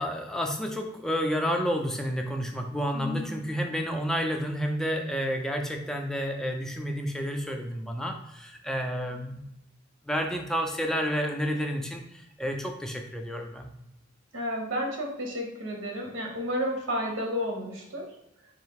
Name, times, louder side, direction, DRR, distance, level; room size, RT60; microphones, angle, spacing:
voice 1, 0.0-9.4 10.0-13.7, equal, 5° left, 2 dB, 0.3 m, -30 dB
voice 2, 2.9-3.4 14.3-18.1, equal, 85° right, 1 dB, 0.9 m, -31 dB
3.7 x 2.6 x 3.6 m, 0.82 s
head